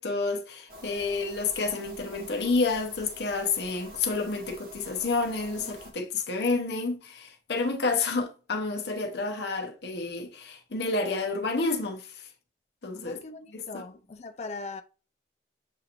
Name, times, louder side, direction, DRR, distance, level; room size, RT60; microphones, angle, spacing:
voice 1, 0.0-12.3 12.8-13.2 13.5-13.8, left 3 dB, 70° left, 0.8 m, -29 dB
sound 1, 0.7-5.9, equal, 55° right, 1.4 m, -47 dB
voice 2, 13.0-14.8, left 3 dB, 40° left, 0.4 m, -40 dB
7.2 x 2.6 x 2.8 m
head